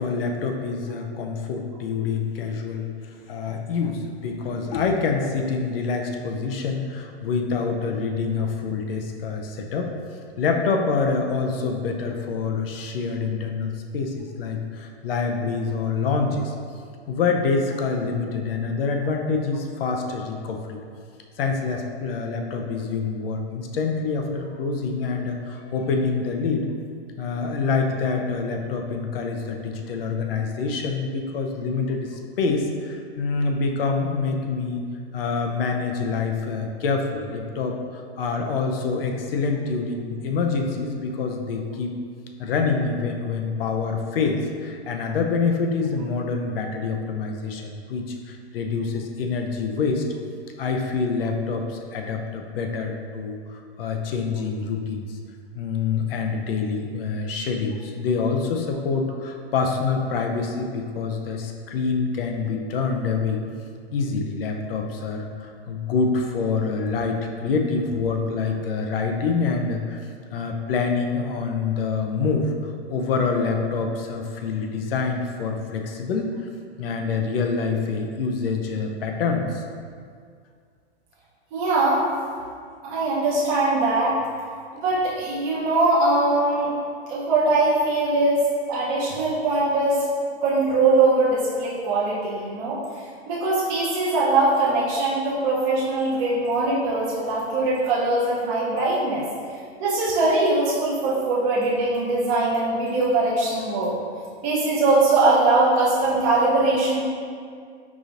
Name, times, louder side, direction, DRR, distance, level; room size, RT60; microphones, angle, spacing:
voice 1, 0.0-9.9 10.4-16.5 17.1-20.8 21.4-26.7 27.2-34.8 35.1-41.9 42.4-50.0 50.6-55.1 55.5-63.4 63.9-70.0 70.3-76.3 76.8-79.6, left 4 dB, 60° left, 3 dB, 0.5 m, -26 dB
voice 2, 81.5-82.0 82.8-84.1 84.7-86.7 87.1-90.0 90.4-92.8 93.3-99.2 99.8-103.9 104.4-107.0, right 2 dB, 30° right, -8 dB, 0.7 m, -21 dB
4.9 x 2.7 x 2.5 m, 2.1 s
hypercardioid pair, 155°, 33 cm